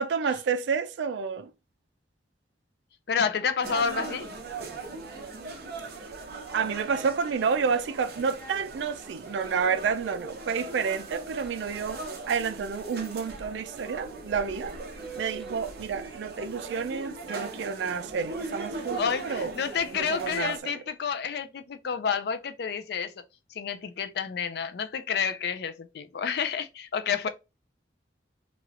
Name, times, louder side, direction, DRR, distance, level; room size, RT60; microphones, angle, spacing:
voice 1, 0.0-1.5 6.5-14.8 15.1-19.5 19.9-20.8, right 6 dB, 80° right, 0.3 m, -30 dB
voice 2, 3.1-4.3 18.9-23.2 23.5-27.3, left 6 dB, 60° left, 0.4 m, -29 dB
sound 1, 3.6-20.6, right 3 dB, 60° right, 0.7 m, -39 dB
3.0 x 2.9 x 2.4 m
head